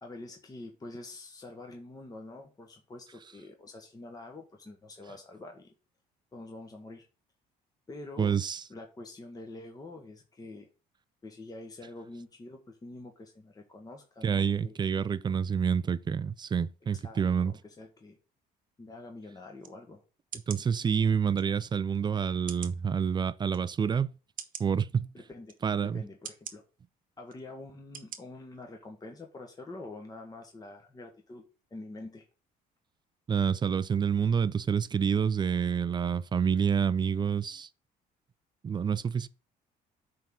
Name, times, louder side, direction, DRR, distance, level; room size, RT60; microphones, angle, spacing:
voice 1, 0.0-5.7 6.3-7.0 7.9-8.3 8.7-10.7 11.2-14.8 16.9-18.2 18.8-20.0 25.1-25.5 25.8-26.6 27.2-32.2, left 2 dB, 20° left, 1.3 m, -46 dB
voice 2, 8.2-8.6 14.2-17.5 20.5-24.1 24.6-25.1 25.6-26.0 33.3-37.7 38.6-39.3, right 7 dB, 25° right, 0.4 m, -28 dB
sound 1, 19.6-19.7 20.3-20.6 21.4-21.5 22.5-22.8 23.5-23.6 24.4-24.7 25.5-25.6 26.2-26.6 27.3-27.4 27.9-28.2 28.6-28.7, right 9 dB, 55° right, 1.1 m, -42 dB
9.1 x 3.7 x 6.0 m
cardioid pair, 110°, 17 cm